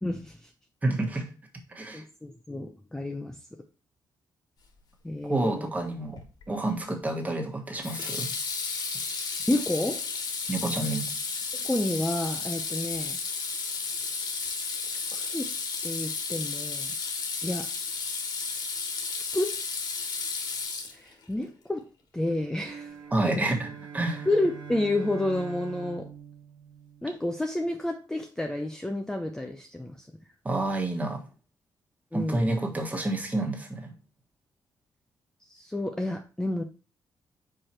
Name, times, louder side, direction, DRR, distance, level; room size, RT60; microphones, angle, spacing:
voice 1, 0.0-0.5 1.9-3.4 5.0-5.7 9.5-10.0 11.6-13.2 14.9-15.5 15.8-16.9 17.4-17.7 19.1-19.5 20.9-21.8 22.1-23.0 24.3-26.1 27.0-30.1 32.1-32.5 35.5-36.6, left 1 dB, 10° left, 4 dB, 0.5 m, -30 dB
voice 2, 0.8-1.3 1.7-2.0 5.3-8.3 10.5-11.1 23.1-24.3 30.4-31.2 32.1-33.9, right 2 dB, 20° right, 2 dB, 1.4 m, -29 dB
Water tap faucet / Sink (filling or washing), 6.2-6.5 7.8-21.2, left 4 dB, 65° left, 1.4 m, -33 dB
sound 1, 22.5-27.2, right 7 dB, 75° right, 1.6 m, -43 dB
4.8 x 4.6 x 4.3 m, 0.35 s
cardioid pair, 130°, 8 cm